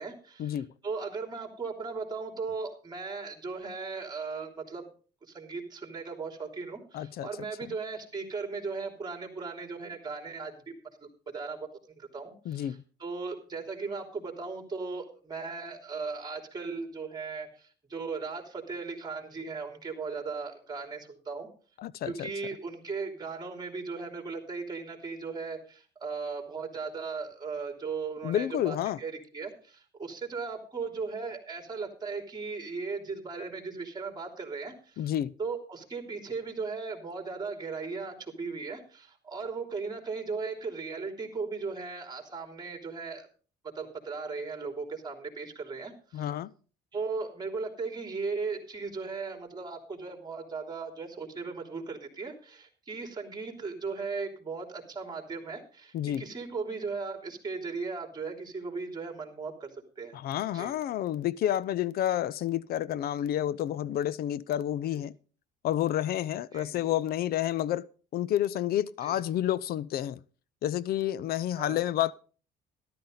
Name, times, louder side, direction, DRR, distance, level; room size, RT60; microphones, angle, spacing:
voice 1, 0.0-4.9 5.2-10.7 11.0-11.6 12.0-21.5 22.1-35.1 35.4-43.3 43.8-46.3 46.9-60.1 60.5-60.7 64.9-65.0 66.5-66.9 69.0-69.2 71.6-71.8, right 4 dB, 25° right, 3.3 m, -37 dB
voice 2, 6.9-7.3 12.5-12.8 21.8-22.3 28.2-29.0 35.0-35.3 46.1-46.5 55.9-56.2 60.1-65.1 65.6-67.9 68.1-70.2 70.6-72.1, left 12 dB, 65° left, 0.6 m, -29 dB
13.0 x 12.0 x 3.9 m
cardioid pair, 110°, 17 cm